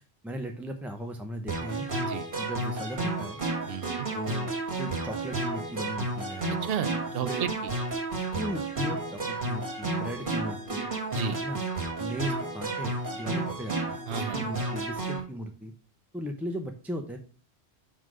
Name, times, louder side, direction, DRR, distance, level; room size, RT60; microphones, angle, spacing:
voice 1, 0.2-1.9 2.4-3.4 4.1-4.5 4.8-6.6 7.2-7.5 8.3-10.9 11.4-11.6 12.0-15.7 16.1-17.2, equal, ahead, 3 dB, 0.6 m, -37 dB
sound 1, 1.5-15.2, right 2 dB, 50° right, 2.0 m, -32 dB
voice 2, 3.7-4.1 6.5-7.7 11.1-11.4 14.1-14.5, right 7 dB, 65° right, 13 dB, 0.7 m, -33 dB
6.2 x 3.8 x 6.3 m, 0.39 s
omnidirectional pair, 1.1 m